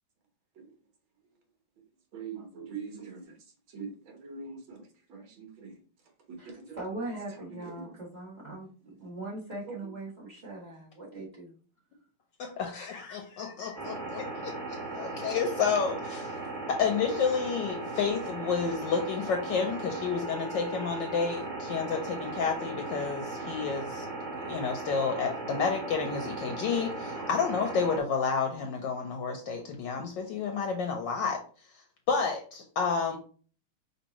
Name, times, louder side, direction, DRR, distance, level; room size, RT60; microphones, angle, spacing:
voice 1, 2.1-3.3 3.7-4.8 5.1-5.7 6.3-6.8 7.8-7.9 8.4-8.6 9.7-9.8, right 5 dB, 75° right, 3 dB, 1.8 m, -42 dB
voice 2, 6.4-11.6, right 2 dB, 20° right, -5 dB, 1.6 m, -40 dB
voice 3, 12.4-16.4 16.7-24.0 24.5-31.4 32.1-33.2, left 5 dB, 70° left, 3 dB, 1.2 m, -30 dB
sound 1, 13.8-28.0, right 3 dB, 35° right, 1.7 m, -37 dB
5.4 x 2.9 x 2.9 m, 0.41 s
omnidirectional pair, 2.3 m